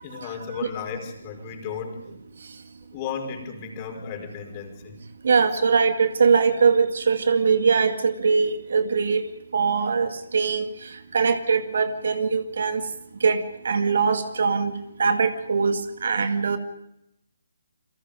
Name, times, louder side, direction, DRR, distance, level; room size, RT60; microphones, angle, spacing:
voice 1, 0.0-2.0 2.9-5.0, left 7 dB, 25° left, 4 dB, 5.0 m, -34 dB
voice 2, 5.2-9.2 9.5-10.7 11.1-12.8 13.2-14.7 15.0-16.6, right 5 dB, 55° right, 8 dB, 2.1 m, -21 dB
29.5 x 23.5 x 5.3 m, 0.83 s
figure-of-eight pair, 140°, 0 cm